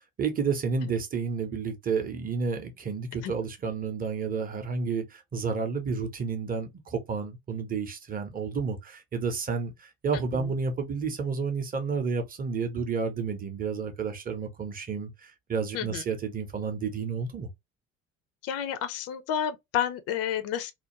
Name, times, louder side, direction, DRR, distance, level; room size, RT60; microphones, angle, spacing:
voice 1, 0.2-17.5, right 5 dB, 25° right, 0.7 m, -31 dB
voice 2, 18.4-20.7, left 9 dB, 40° left, 0.5 m, -30 dB
2.4 x 2.1 x 2.9 m
figure-of-eight pair, 60°, 38 cm